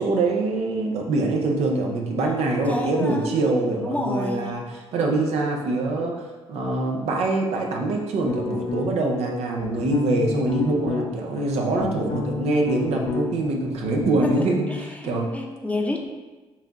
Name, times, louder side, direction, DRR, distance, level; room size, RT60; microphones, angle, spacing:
voice 1, 0.0-4.6 4.9-14.6 15.0-15.3, right 2 dB, 75° right, 1 dB, 0.6 m, -24 dB
voice 2, 2.7-3.5 3.8-4.5 14.2-16.0, left 1 dB, 15° left, 1 dB, 0.6 m, -29 dB
sound 1, 8.3-9.1 9.6-11.1 11.5-13.5 13.7-14.8, left 4 dB, 65° left, 0.7 m, -30 dB
5.6 x 2.8 x 2.4 m, 1.2 s
supercardioid pair, 70°, 11 cm